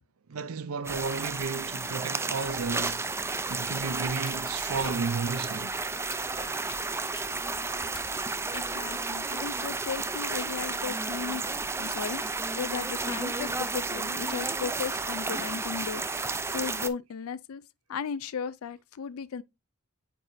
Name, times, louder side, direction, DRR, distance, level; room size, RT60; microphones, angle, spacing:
voice 1, 0.3-3.1 3.4-5.8, right 4 dB, 85° right, 0.6 m, -33 dB
sound 1, 0.8-16.9, right 3 dB, 10° right, 0.4 m, -32 dB
sound 2, 4.2-11.2, left 5 dB, 25° left, 0.9 m, -46 dB
voice 2, 8.5-17.6 17.9-19.4, left 6 dB, 85° left, 0.4 m, -36 dB
8.8 x 4.6 x 2.6 m
head